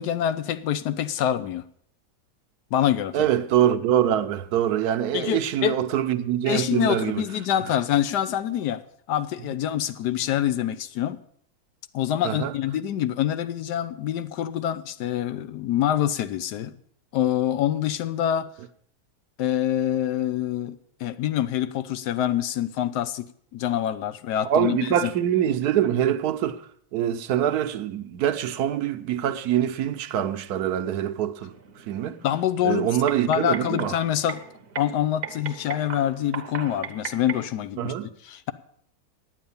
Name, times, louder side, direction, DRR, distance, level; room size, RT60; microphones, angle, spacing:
voice 1, 0.0-1.6 2.7-3.3 5.1-5.8 6.5-8.8 9.1-11.2 11.9-16.8 17.1-18.5 19.4-25.1 32.2-33.0 33.3-34.4 34.8-37.9 38.2-38.5, left 11 dB, 85° left, 1.3 m, -26 dB
voice 2, 3.1-7.2 12.2-12.5 24.4-26.6 26.9-31.5 31.9-32.2 32.6-33.9 37.8-38.1, right 10 dB, 75° right, 1.2 m, -24 dB
sound 1, 31.4-37.5, right 7 dB, 45° right, 0.9 m, -38 dB
10.0 x 9.0 x 7.0 m
omnidirectional pair, 1.7 m